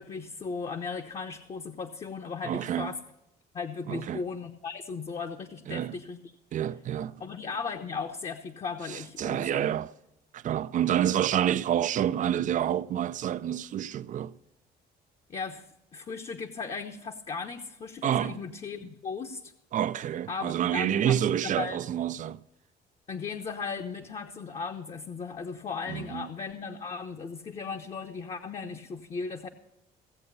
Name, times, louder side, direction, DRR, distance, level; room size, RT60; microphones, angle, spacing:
voice 1, 0.0-3.0 3.5-6.2 7.2-9.7 15.3-15.7 15.9-19.5 20.3-21.8 23.1-29.5, left 5 dB, 35° left, 1.0 m, -37 dB
voice 2, 2.4-3.0 3.9-4.2 5.7-6.0 6.5-7.2 8.9-9.9 10.3-14.3 18.0-18.4 19.7-22.4 25.9-26.3, right 10 dB, 50° right, 0.5 m, -28 dB
16.5 x 7.7 x 6.7 m
cardioid pair, 110°, 17 cm